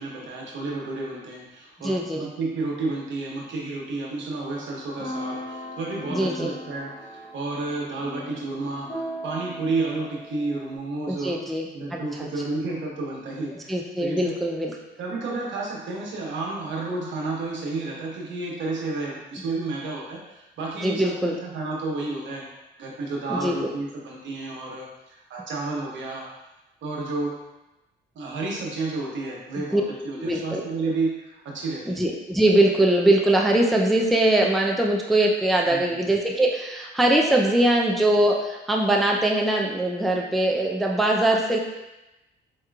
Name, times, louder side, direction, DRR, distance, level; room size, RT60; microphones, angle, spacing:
voice 1, 0.0-11.4 11.7-13.7 14.0-14.3 15.0-22.4 22.8-26.3 26.8-27.4 28.1-32.0 35.7-36.0, right 3 dB, 70° right, -3 dB, 1.0 m, -31 dB
voice 2, 1.8-2.2 6.1-6.5 11.2-12.0 13.7-14.7 20.8-21.4 23.3-23.6 29.7-29.8 30.2-30.6 31.9-41.6, right 1 dB, ahead, -1 dB, 0.4 m, -22 dB
sound 1, 5.0-10.8, equal, 30° left, 0.9 m, -37 dB
4.7 x 2.9 x 2.3 m, 0.99 s
cardioid pair, 90°, 20 cm